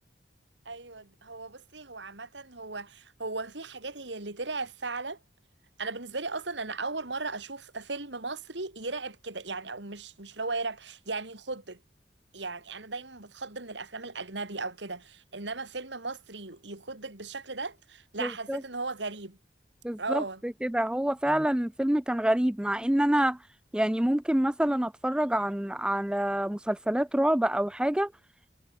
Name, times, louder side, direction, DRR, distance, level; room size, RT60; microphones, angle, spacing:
voice 1, 0.6-5.2 5.8-11.8 12.3-19.4 20.0-20.4, right 3 dB, 80° right, 3.3 m, -37 dB
voice 2, 18.2-18.6 19.8-23.4 23.7-28.1, right 1 dB, 5° right, 0.4 m, -27 dB
head